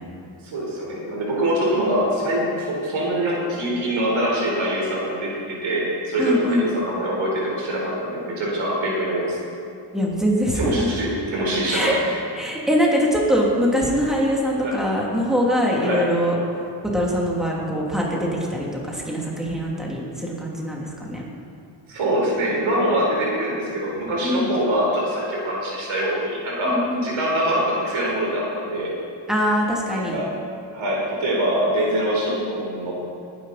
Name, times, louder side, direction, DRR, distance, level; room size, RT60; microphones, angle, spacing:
voice 1, 0.4-9.4 10.5-12.2 14.6-14.7 15.8-16.0 21.9-28.9 30.0-30.3 30.7-32.9, right 1 dB, 90° right, -3 dB, 4.4 m, -24 dB
voice 2, 6.2-6.7 9.9-10.9 11.6-12.0 12.3-16.4 16.9-21.2 24.2-24.5 26.7-27.1 29.3-30.2, equal, ahead, -4 dB, 2.9 m, -23 dB
21.0 x 10.5 x 4.3 m, 2.5 s
cardioid pair, 100°, 46 cm